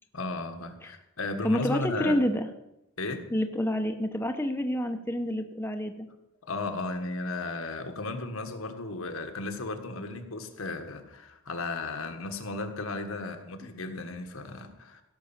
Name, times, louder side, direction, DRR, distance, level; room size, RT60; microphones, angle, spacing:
voice 1, 0.1-2.2 3.0-3.2 6.5-15.0, left 3 dB, 75° left, 6 dB, 1.6 m, -35 dB
voice 2, 1.4-2.5 3.3-6.1 13.6-13.7, equal, 10° left, 5 dB, 0.9 m, -28 dB
16.5 x 6.4 x 7.3 m, 0.87 s
head